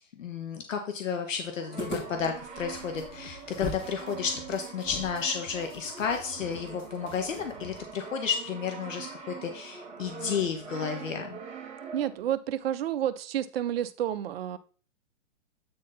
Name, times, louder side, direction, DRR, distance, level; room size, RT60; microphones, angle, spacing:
voice 1, 0.1-11.4, left 6 dB, 80° left, 4 dB, 1.3 m, -32 dB
Brass instrument, 1.5-12.4, right 6 dB, 15° right, 1.1 m, -43 dB
sound 1, 1.8-3.9 4.2-4.3 4.8-8.0, left 1 dB, 25° left, 3.9 m, -41 dB
sound 2, 2.7-7.8, left 5 dB, 55° left, 1.3 m, -51 dB
voice 2, 11.9-14.6, right 11 dB, 50° right, 12 dB, 0.7 m, -30 dB
8.5 x 4.0 x 4.0 m, 0.39 s
hypercardioid pair, 150°, 38 cm